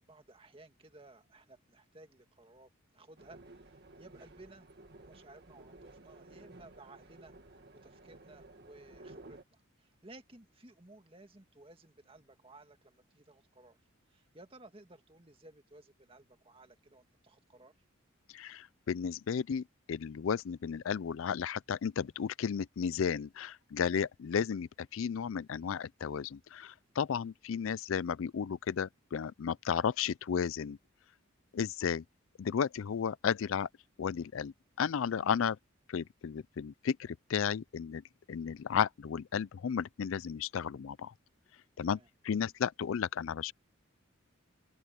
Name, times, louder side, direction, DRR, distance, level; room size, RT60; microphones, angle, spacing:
voice 1, 0.0-3.4 3.7-4.7 5.0-7.3 7.8-13.8 14.1-17.7 41.8-42.1, right 2 dB, 25° right, 2.0 m, -57 dB
sound 1, 3.2-9.4, right 2 dB, 50° right, 2.0 m, -54 dB
voice 2, 18.3-30.8 31.5-32.0 32.4-33.7 34.0-35.6 35.9-38.0 38.3-41.1 41.8-42.0 42.2-43.5, left 7 dB, 70° left, 0.4 m, -33 dB
head